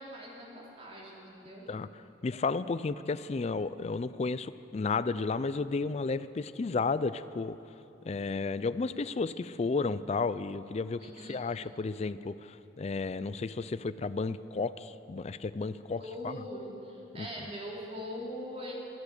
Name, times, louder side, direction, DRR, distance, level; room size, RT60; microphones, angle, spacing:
voice 1, 0.0-1.7 11.0-11.4 16.0-18.7, equal, 35° right, -3 dB, 3.0 m, -42 dB
voice 2, 1.7-7.6 8.0-16.4 17.1-17.3, left 4 dB, 35° left, 14 dB, 0.4 m, -33 dB
23.5 x 8.4 x 6.7 m, 2.8 s
head